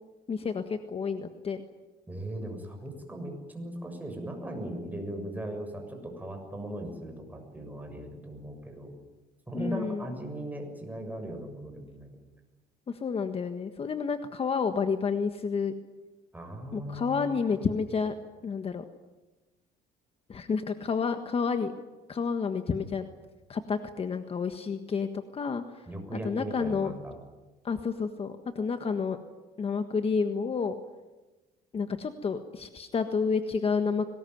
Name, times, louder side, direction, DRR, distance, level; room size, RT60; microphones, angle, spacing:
voice 1, 0.3-1.6 9.5-10.0 12.9-15.7 16.7-18.1 18.4-18.8 20.3-21.7 22.1-23.0 23.5-25.8 26.2-26.9 27.6-29.2 29.6-30.7 31.7-34.0, left 5 dB, 35° left, 8 dB, 1.5 m, -30 dB
voice 2, 2.1-8.9 9.5-12.2 16.3-17.6 25.9-27.2, right 1 dB, 10° right, 4 dB, 7.0 m, -38 dB
23.0 x 20.0 x 9.4 m, 1.1 s
cardioid pair, 110°, 17 cm